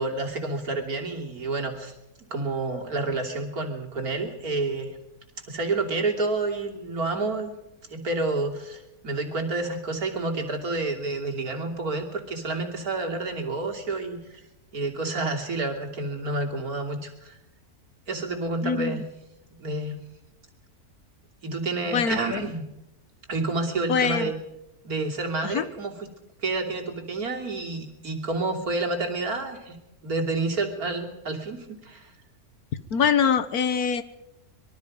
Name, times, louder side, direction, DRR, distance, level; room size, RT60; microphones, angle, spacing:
voice 1, 0.0-1.9 2.3-5.0 5.5-7.5 7.9-14.4 14.7-17.4 18.1-19.0 19.6-20.0 21.4-22.6 23.3-24.3 24.8-26.1 26.4-29.8 30.0-32.1, right 3 dB, 75° right, 1 dB, 3.5 m, -29 dB
voice 2, 18.6-19.0 21.9-22.4 23.9-24.3 25.4-25.7 32.9-34.0, left 7 dB, 85° left, 13 dB, 1.7 m, -24 dB
25.5 x 22.5 x 5.4 m, 0.86 s
omnidirectional pair, 1.6 m